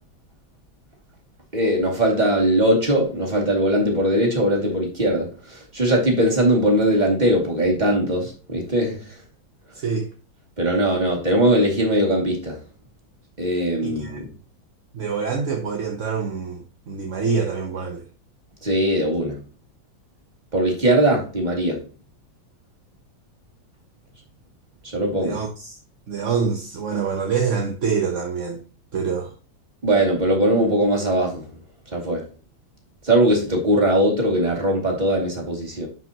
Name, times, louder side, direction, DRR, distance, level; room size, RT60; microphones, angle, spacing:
voice 1, 1.5-9.2 10.6-12.6 13.4-14.3 18.6-19.4 20.5-21.8 24.8-25.4 29.8-31.5 31.9-32.2 33.0-35.9, right 1 dB, 20° right, 2.6 m, -20 dB
voice 2, 9.7-10.1 13.8-14.2 14.9-18.1 25.2-25.8 26.1-28.6 28.9-29.3, right 5 dB, 50° right, 1.1 m, -26 dB
10.5 x 5.5 x 3.0 m
omnidirectional pair, 2.1 m